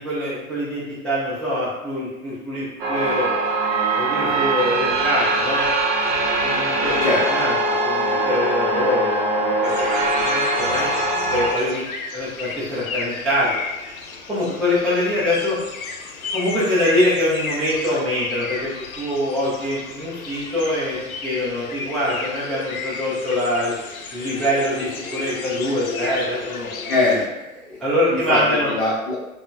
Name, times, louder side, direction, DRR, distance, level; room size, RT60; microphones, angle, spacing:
voice 1, 0.0-3.3 4.0-5.7 6.4-9.7 10.0-10.9 11.3-11.8 12.1-13.5 14.3-15.6 16.3-23.7 24.1-26.7 27.8-28.7, left 1 dB, ahead, -11 dB, 0.4 m, -24 dB
sound 1, 2.8-11.5, right 2 dB, 40° right, 0.8 m, -21 dB
voice 2, 6.8-7.2 26.9-28.4 28.7-29.2, left 2 dB, 45° left, -7 dB, 0.8 m, -23 dB
sound 2, 9.6-27.3, left 4 dB, 80° left, 0.5 m, -33 dB
3.9 x 2.0 x 2.3 m, 1.0 s
figure-of-eight pair, 100°, 42 cm